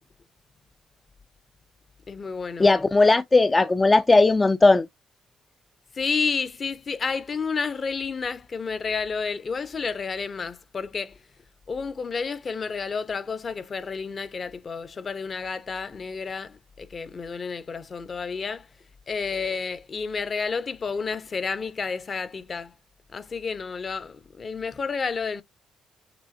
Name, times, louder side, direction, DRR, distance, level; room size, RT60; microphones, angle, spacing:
voice 1, 2.1-2.7 5.9-11.2 11.7-18.7 19.1-22.7 23.1-25.4, left 5 dB, 40° left, 0.7 m, -30 dB
voice 2, 2.6-4.9, left 3 dB, 20° left, 0.4 m, -17 dB
6.1 x 3.4 x 2.6 m
cardioid pair, 90°, 0 cm